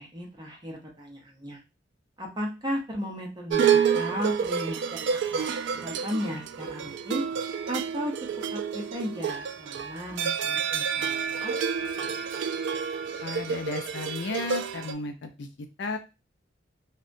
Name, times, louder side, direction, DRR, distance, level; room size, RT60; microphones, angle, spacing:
voice 1, 0.0-1.6 2.2-5.5 5.7-7.2 7.7-8.1 8.5-11.6, equal, 25° right, -1 dB, 0.7 m, -35 dB
sound 1, 3.5-14.9, right 7 dB, 70° right, 0.3 m, -29 dB
voice 2, 13.2-16.0, left 3 dB, 65° left, 6 dB, 0.4 m, -34 dB
2.7 x 2.2 x 2.5 m, 0.27 s
head